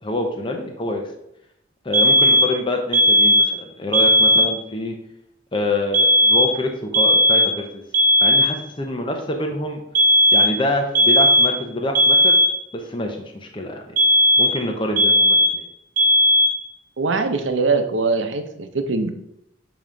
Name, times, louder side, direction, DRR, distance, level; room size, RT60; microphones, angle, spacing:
voice 1, 0.0-1.0 1.8-4.9 5.5-7.8 8.2-9.8 10.3-12.3 12.7-13.2 13.5-13.8 14.4-15.6, left 1 dB, 25° left, 2 dB, 0.8 m, -26 dB
sound 1, 1.9-2.6 2.9-3.6 3.9-4.6 5.9-6.6 6.9-7.6 7.9-8.6 10.0-10.6 11.0-11.6 12.0-12.6 14.0-14.6 15.0-15.6 16.0-16.6, equal, 45° right, 0.9 m, -16 dB
voice 2, 17.0-19.1, right 3 dB, 85° right, 7 dB, 0.8 m, -22 dB
8.8 x 3.1 x 5.1 m, 0.81 s
head